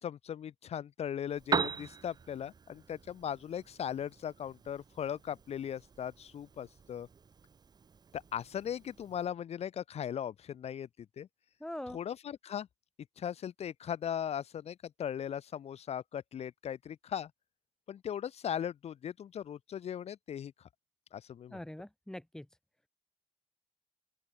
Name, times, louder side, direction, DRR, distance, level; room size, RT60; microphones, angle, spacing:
voice 1, 0.0-7.1 8.1-10.9 11.2-11.3 11.9-12.7 13.2-17.3 17.9-20.5 21.1-21.6, left 9 dB, 70° left, 2.4 m, -38 dB
Piano, 1.3-9.3, right 5 dB, 40° right, 2.0 m, -41 dB
voice 2, 11.6-12.0 21.5-22.5, left 1 dB, 5° left, 3.8 m, -42 dB
open air
wide cardioid pair, 135°, 11 cm